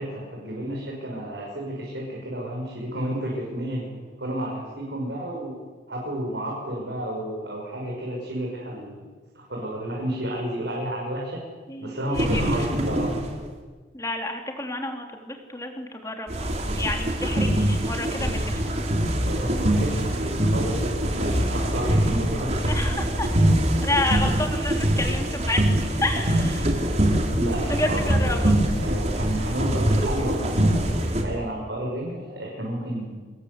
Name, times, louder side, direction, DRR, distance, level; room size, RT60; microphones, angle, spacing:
voice 1, 0.0-5.5 5.9-11.4 11.8-13.2 19.2-22.6 27.3-33.2, right 1 dB, 85° right, -2 dB, 6.2 m, -31 dB
voice 2, 11.7-12.4 13.9-16.5 16.8-18.5 22.6-23.3 23.8-25.6 26.0-26.8 27.7-28.5, left 2 dB, 20° left, 3 dB, 3.4 m, -30 dB
sound 1, 12.1-13.5 16.3-31.2, right 1 dB, 40° right, 3.5 m, -23 dB
26.5 x 21.0 x 8.3 m, 1.4 s
head